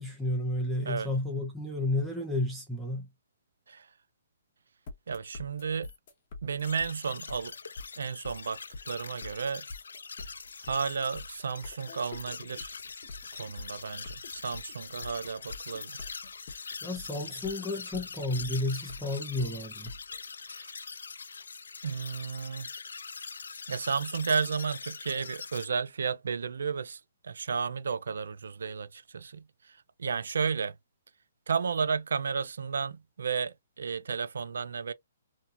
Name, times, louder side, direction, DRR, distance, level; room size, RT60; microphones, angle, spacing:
voice 1, 0.0-3.1 16.8-19.9, left 2 dB, ahead, 0.5 m, -32 dB
sound 1, 4.9-20.2, left 3 dB, 45° left, 1.0 m, -45 dB
voice 2, 5.1-5.9 6.4-7.5 8.0-8.6 8.9-9.7 10.6-12.7 13.4-16.0 20.5-20.7 21.8-22.7 23.7-30.8 31.5-34.9, right 6 dB, 80° right, 0.3 m, -33 dB
sound 2, 6.6-25.7, left 5 dB, 85° left, 0.3 m, -43 dB
2.6 x 2.2 x 2.8 m
hypercardioid pair, 145°, 0 cm